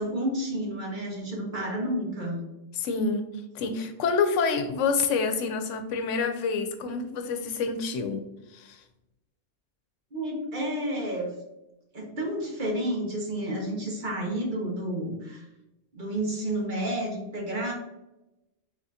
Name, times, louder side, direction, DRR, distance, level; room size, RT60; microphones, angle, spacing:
voice 1, 0.0-2.4 10.1-11.3 11.9-15.4 15.9-17.7, right 1 dB, 45° right, -2 dB, 1.1 m, -30 dB
voice 2, 2.7-3.3 3.5-8.2 8.5-8.8, left 5 dB, 85° left, 8 dB, 0.9 m, -27 dB
4.0 x 3.6 x 2.7 m, 0.95 s
omnidirectional pair, 1.2 m